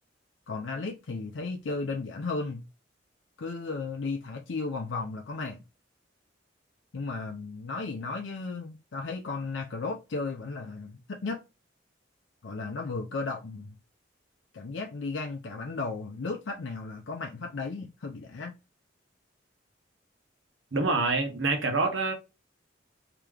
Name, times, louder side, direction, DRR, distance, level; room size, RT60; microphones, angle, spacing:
voice 1, 0.5-2.6 3.4-5.6 6.9-11.4 12.4-13.7 14.5-18.5, left 3 dB, 70° left, 0.5 m, -35 dB
voice 2, 20.7-22.1, right 3 dB, 80° right, 1.0 m, -26 dB
3.5 x 2.9 x 3.3 m
head